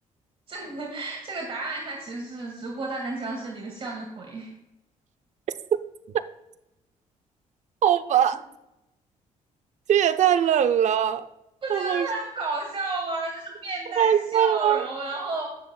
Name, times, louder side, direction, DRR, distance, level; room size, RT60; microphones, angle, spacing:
voice 1, 0.5-4.5 11.6-15.5, right 3 dB, 40° right, 2.1 m, -32 dB
voice 2, 7.8-8.4 9.9-11.3 11.7-12.1 14.0-14.9, right 9 dB, 60° right, 0.6 m, -21 dB
17.5 x 7.2 x 2.3 m
cardioid pair, 95°, 14 cm